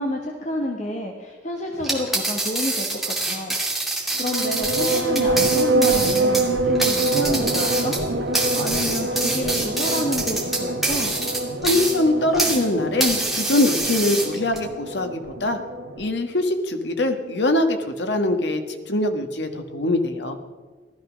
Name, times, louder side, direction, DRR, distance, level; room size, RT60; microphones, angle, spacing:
voice 1, 0.0-3.6 4.0-8.0 8.5-11.2, left 1 dB, 40° left, 1 dB, 1.4 m, -29 dB
sound 1, 1.8-12.7 13.0-14.6, right 2 dB, ahead, 2.4 m, -26 dB
sound 2, 4.2-16.1, right 2 dB, 85° right, 1.5 m, -25 dB
voice 2, 11.6-15.6 16.0-18.6 18.9-20.4, left 1 dB, 75° left, 6 dB, 1.5 m, -22 dB
16.0 x 13.0 x 6.3 m, 1.4 s
head